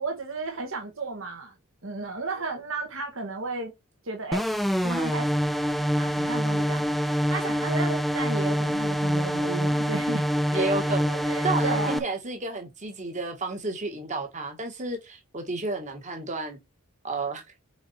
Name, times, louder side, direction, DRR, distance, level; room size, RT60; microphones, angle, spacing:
voice 1, 0.0-1.5 1.8-3.7 4.0-4.4 4.8-5.3 6.0-10.3 10.5-10.7 11.2-12.1, right 3 dB, 60° right, 1.5 m, -33 dB
sound 1, 4.3-12.0, equal, ahead, 0.4 m, -25 dB
voice 2, 10.5-16.6 17.0-17.4, right 2 dB, 35° right, 1.6 m, -31 dB
4.9 x 4.8 x 4.3 m
head